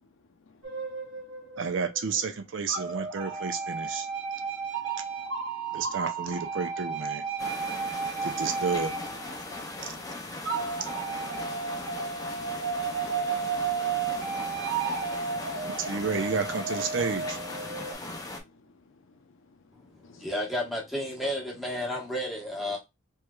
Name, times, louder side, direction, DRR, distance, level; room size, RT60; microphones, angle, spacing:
voice 1, 0.0-1.2 4.0-6.0 7.4-8.1 9.5-9.9 12.9-13.3 13.8-14.3 15.0-15.7 17.9-20.3, left 3 dB, 65° left, 0.6 m, -60 dB
sound 1, 0.6-2.2 2.7-9.8 10.5-17.9, right 5 dB, 85° right, 1.2 m, -33 dB
voice 2, 1.6-4.1 5.7-7.2 8.2-8.9 9.8-9.9 15.8-17.4, right 5 dB, 60° right, 0.5 m, -31 dB
sound 2, 7.4-18.4, left 2 dB, 15° left, 0.5 m, -39 dB
voice 3, 20.2-22.8, equal, ahead, 1.0 m, -31 dB
3.2 x 3.0 x 2.3 m
head